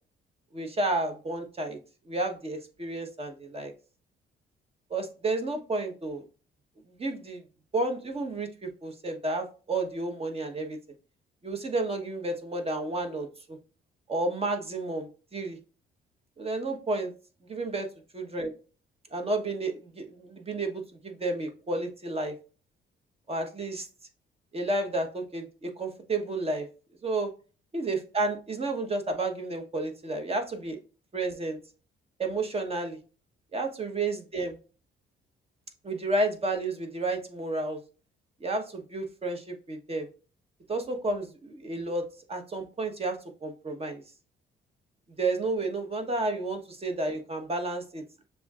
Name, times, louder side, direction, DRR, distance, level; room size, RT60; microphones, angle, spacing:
voice 1, 0.5-1.8 2.1-3.7 4.9-6.2 6.9-7.4 7.7-10.8 11.4-13.6 14.1-15.6 16.4-17.1 17.5-17.9 18.1-18.5 19.1-22.3 23.3-23.9 24.5-26.7 27.0-27.3 27.7-30.8 31.1-31.6 32.2-33.0 33.5-34.6 35.8-37.8 38.4-40.1 40.7-44.0 45.2-48.0, right 2 dB, 30° right, 4 dB, 1.1 m, -31 dB
6.7 x 2.7 x 2.4 m, 0.36 s
cardioid pair, 90°, 20 cm